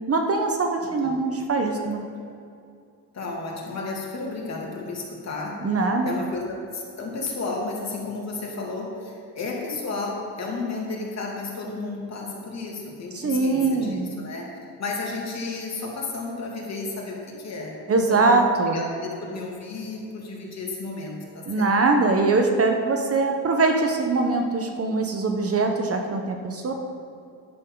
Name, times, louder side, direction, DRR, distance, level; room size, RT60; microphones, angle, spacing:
voice 1, 0.1-2.0 5.6-6.1 13.1-14.1 17.9-18.8 21.5-26.7, right 3 dB, 40° right, 4 dB, 1.3 m, -22 dB
voice 2, 0.8-1.1 1.6-1.9 3.1-5.6 6.0-14.5 14.8-18.4 18.7-21.7, left 3 dB, 45° left, -2 dB, 2.8 m, -33 dB
10.5 x 9.9 x 4.0 m, 2.4 s
supercardioid pair, 80°, 37 cm